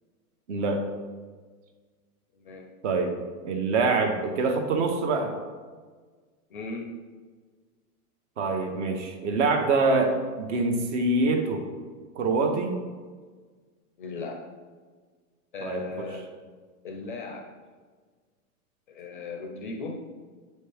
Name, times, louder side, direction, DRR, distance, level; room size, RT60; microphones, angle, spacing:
voice 1, 0.5-0.8 2.8-3.1 3.4-5.3 8.4-11.7 12.2-12.8 15.6-16.1, right 3 dB, 50° right, 5 dB, 0.9 m, -25 dB
voice 2, 2.4-2.7 6.5-6.9 14.0-14.4 15.5-16.3 16.8-17.5 18.9-20.0, left 3 dB, 35° left, 2 dB, 0.4 m, -37 dB
7.8 x 4.3 x 3.3 m, 1.5 s
supercardioid pair, 165°, 46 cm